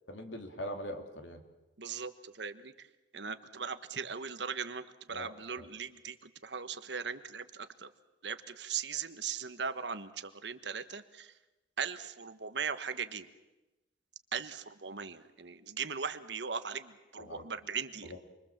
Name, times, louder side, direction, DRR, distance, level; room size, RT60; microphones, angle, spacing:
voice 1, 0.1-1.4 5.1-5.7 17.2-17.5 18.0-18.2, left 1 dB, 90° left, 5 dB, 2.9 m, -42 dB
voice 2, 1.8-2.9 3.1-4.8 5.1-7.9 8.2-11.3 11.8-13.3 14.3-18.1, right 6 dB, 70° right, 10 dB, 1.3 m, -39 dB
28.5 x 23.0 x 7.4 m, 1.1 s
head